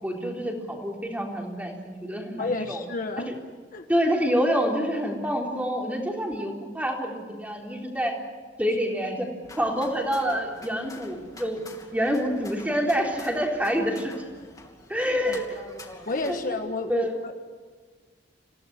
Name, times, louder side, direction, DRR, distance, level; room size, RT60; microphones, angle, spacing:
voice 1, 0.0-2.8 3.3-3.4 3.9-8.1 8.6-9.3 9.6-11.6 11.9-14.1 14.9-15.6 16.3-16.4 16.9-17.1, equal, 10° right, 0 dB, 3.8 m, -27 dB
voice 2, 2.4-3.3 3.7-3.9 15.1-15.4 16.1-17.3, left 3 dB, 45° left, 5 dB, 1.5 m, -31 dB
sound 1, 9.4-16.5, left 2 dB, 20° left, 2.9 m, -47 dB
28.0 x 17.0 x 9.6 m, 1.5 s
head